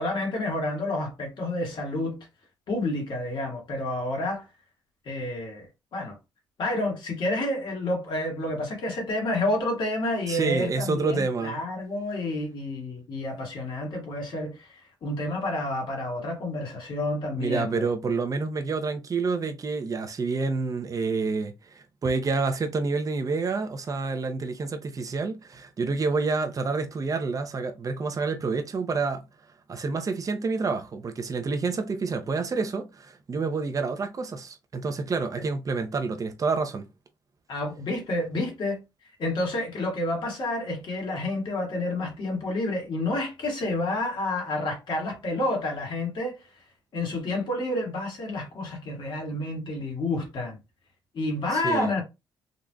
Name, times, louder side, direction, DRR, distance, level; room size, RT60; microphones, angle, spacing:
voice 1, 0.0-2.3 2.7-4.5 5.1-6.2 6.6-17.9 35.4-35.5 37.5-38.8 39.2-46.4 46.9-50.6 51.1-52.0, left 1 dB, 60° left, 1.8 m, -29 dB
voice 2, 10.3-11.6 17.4-29.3 29.7-36.9 51.5-51.9, right 4 dB, 40° right, 0.8 m, -28 dB
3.8 x 3.0 x 2.3 m
cardioid pair, 75°, 9 cm